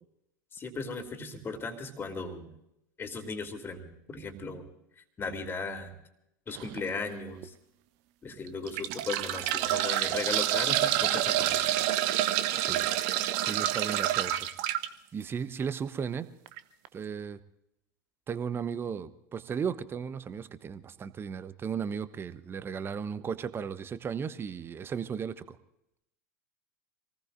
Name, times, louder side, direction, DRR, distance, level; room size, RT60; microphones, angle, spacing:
voice 1, 0.5-2.5 3.0-4.7 5.0-5.9 6.5-7.5 8.2-11.9, left 3 dB, 20° left, 6 dB, 2.8 m, -37 dB
sound 1, 6.5-6.8 7.4-7.5 8.5-14.9 16.5-16.6 16.8-16.9, right 13 dB, 50° right, 0.9 m, -28 dB
voice 2, 13.4-14.5 15.1-16.3 16.9-17.4 18.3-25.6, right 6 dB, 20° right, 14 dB, 1.0 m, -35 dB
27.0 x 19.5 x 2.6 m, 0.82 s
figure-of-eight pair, 80°, 10 cm